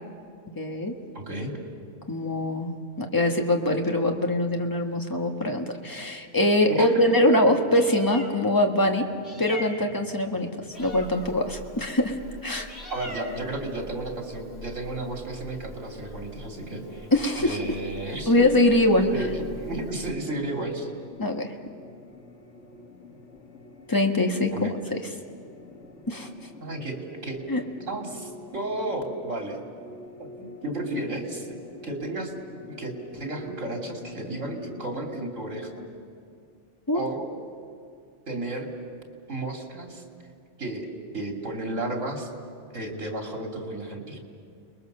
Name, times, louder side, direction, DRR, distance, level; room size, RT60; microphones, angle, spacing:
voice 1, 0.5-0.9 2.1-9.1 9.4-10.5 10.8-12.2 12.4-12.7 17.1-17.7 18.3-19.1 21.2-21.5 23.9-25.0 26.1-26.3 27.5-27.6 36.9-37.1, left 1 dB, 15° left, 3 dB, 1.5 m, -23 dB
voice 2, 1.1-1.6 6.7-7.1 12.9-17.1 17.4-18.6 19.1-20.9 24.5-24.8 26.6-27.4 27.9-29.6 30.2-31.6 31.8-32.3 32.7-35.8 36.9-37.3 38.3-38.7 39.3-40.0 40.6-40.9 41.1-42.3 42.7-44.2, right 2 dB, 85° right, 2 dB, 3.3 m, -33 dB
Meow, 7.6-20.1, left 1 dB, 50° left, 3.6 m, -43 dB
sound 1, 16.8-35.9, left 2 dB, 70° left, 1.9 m, -46 dB
30.0 x 21.0 x 6.7 m, 2.3 s
omnidirectional pair, 1.3 m